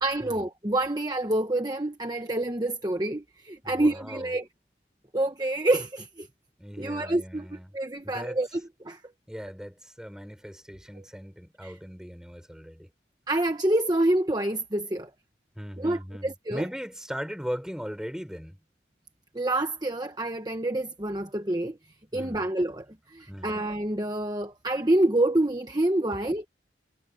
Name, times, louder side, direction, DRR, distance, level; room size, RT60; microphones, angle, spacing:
voice 1, 0.0-4.5 5.1-6.3 6.8-9.0 11.0-11.1 11.6-11.8 13.3-15.1 15.8-16.7 19.3-21.8 22.1-22.8 23.1-26.5, right 1 dB, 20° right, 1.1 m, -27 dB
voice 2, 3.6-4.3 6.6-7.7 8.0-8.4 9.3-12.9 15.6-18.6 22.1-22.4 23.3-23.6 26.1-26.3, equal, 5° right, 6.1 m, -39 dB
head